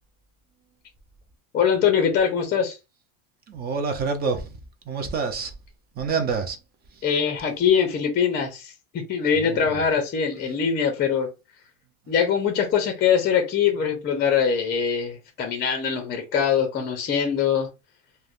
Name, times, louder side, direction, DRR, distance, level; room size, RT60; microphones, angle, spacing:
voice 1, 1.5-2.8 7.0-11.3 12.1-17.7, left 7 dB, 25° left, 0.5 m, -23 dB
voice 2, 3.5-4.5 4.9-5.5 6.0-6.6 9.4-9.7, right 5 dB, 25° right, 0.4 m, -27 dB
3.3 x 2.1 x 2.5 m
supercardioid pair, 135°, 41 cm